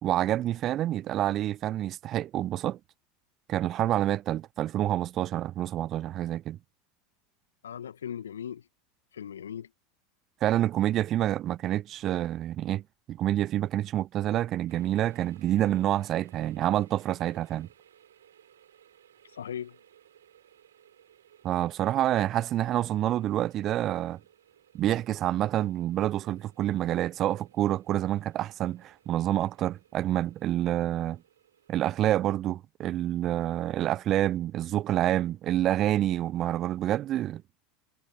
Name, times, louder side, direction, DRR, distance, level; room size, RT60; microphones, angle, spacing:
voice 1, 0.0-2.8 3.5-6.6 10.4-12.8 13.1-17.7 21.4-24.2 24.7-31.2 31.7-37.4, right 13 dB, 40° right, 0.3 m, -27 dB
voice 2, 7.6-8.7 9.1-9.7 19.3-19.8, left 9 dB, 75° left, 1.5 m, -38 dB
sound 1, 14.7-31.7, right 10 dB, 75° right, 7.3 m, -61 dB
figure-of-eight pair, 80°, 0 cm